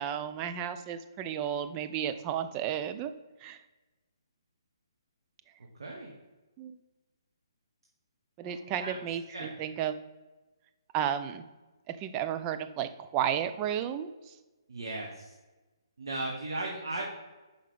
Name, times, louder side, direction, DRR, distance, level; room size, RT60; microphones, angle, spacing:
voice 1, 0.0-3.1 3.4-3.6 6.6-6.8 8.4-9.9 10.9-11.4 11.9-14.4, right 9 dB, 25° right, 10 dB, 0.4 m, -33 dB
voice 2, 5.8-6.1 8.4-9.0 9.3-9.5 14.7-15.3 16.0-17.0, right 2 dB, 70° right, -1 dB, 1.3 m, -37 dB
5.6 x 5.0 x 5.0 m, 1.2 s
figure-of-eight pair, 135°, 3 cm